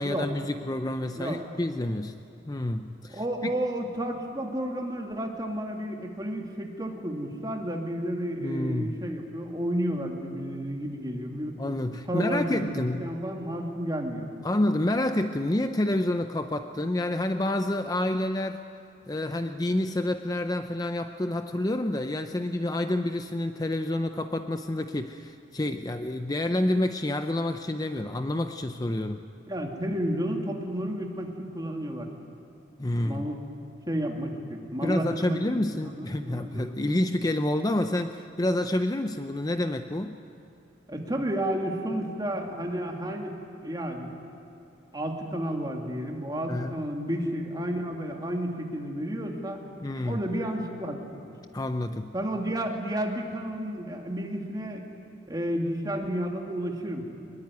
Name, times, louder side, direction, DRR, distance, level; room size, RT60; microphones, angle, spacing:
voice 1, 0.0-2.2 2.5-3.5 8.4-9.0 11.6-13.1 14.4-18.6 19.1-29.2 32.8-33.3 34.8-40.2 46.5-46.7 49.8-50.2 51.5-52.1, left 1 dB, 20° left, 8 dB, 0.6 m, -28 dB
voice 2, 3.1-11.6 12.1-14.3 29.5-32.1 33.0-33.4 33.9-36.7 40.9-43.3 43.6-44.2 44.9-49.6 50.0-51.1 52.1-54.9 55.3-57.1, right 1 dB, 20° right, 1 dB, 2.5 m, -31 dB
23.0 x 21.0 x 9.5 m, 2.6 s
head